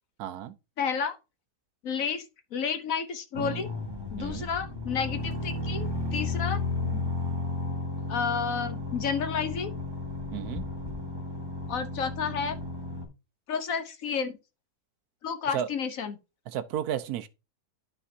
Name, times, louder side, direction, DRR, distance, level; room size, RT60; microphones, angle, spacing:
voice 1, 0.2-0.5 4.2-4.5 10.3-10.6 15.5-15.7 16.5-17.3, right 10 dB, 75° right, 1.1 m, -32 dB
voice 2, 0.8-1.2 1.8-2.2 2.5-3.7 4.1-7.1 8.1-9.7 11.7-12.6 13.5-14.4 15.2-16.2, left 6 dB, 60° left, 1.2 m, -31 dB
sound 1, 3.3-13.0, left 2 dB, 15° right, 1.6 m, -33 dB
12.5 x 4.3 x 2.7 m
omnidirectional pair, 1.7 m